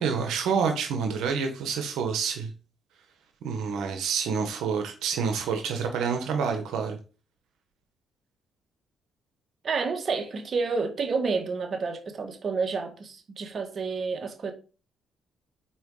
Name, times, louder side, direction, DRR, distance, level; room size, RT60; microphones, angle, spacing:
voice 1, 0.0-2.5 3.4-7.0, right 6 dB, 85° right, 1.2 m, -28 dB
voice 2, 9.6-14.5, right 4 dB, 45° right, 1.8 m, -29 dB
6.2 x 4.6 x 4.9 m
cardioid pair, 90°, 0 cm